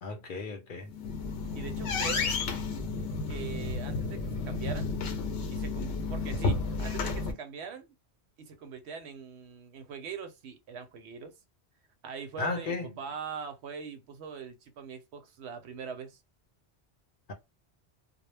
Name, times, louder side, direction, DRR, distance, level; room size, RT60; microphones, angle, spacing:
voice 1, 0.0-0.9 12.4-13.1, left 3 dB, 55° left, 0.7 m, -35 dB
sound 1, 0.8-7.3, left 4 dB, 85° left, 0.9 m, -32 dB
voice 2, 1.5-2.3 3.3-4.9 5.5-7.9 8.4-11.3 12.0-16.2, right 6 dB, 80° right, 0.9 m, -42 dB
2.2 x 2.1 x 3.2 m
omnidirectional pair, 1.1 m